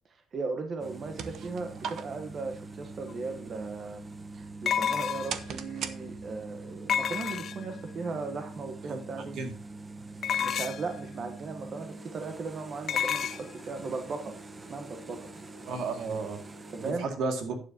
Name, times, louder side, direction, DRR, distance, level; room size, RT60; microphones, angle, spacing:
voice 1, 0.1-4.1 4.3-9.4 10.3-14.4 14.7-15.3 16.7-17.1, right 4 dB, 40° right, 6 dB, 1.1 m, -37 dB
sound 1, 0.8-16.9, right 3 dB, 25° right, 1.0 m, -44 dB
sound 2, 0.8-6.6, right 7 dB, 65° right, 0.9 m, -43 dB
sound 3, 3.1-3.2 4.7-5.5 6.9-7.8 10.2-10.9 12.9-13.4, left 8 dB, 50° left, 0.6 m, -29 dB
voice 2, 8.9-9.5 15.6-16.4 16.8-17.5, right 4 dB, 80° right, 5 dB, 2.2 m, -33 dB
11.5 x 9.3 x 2.8 m, 0.39 s
cardioid pair, 135°, 0 cm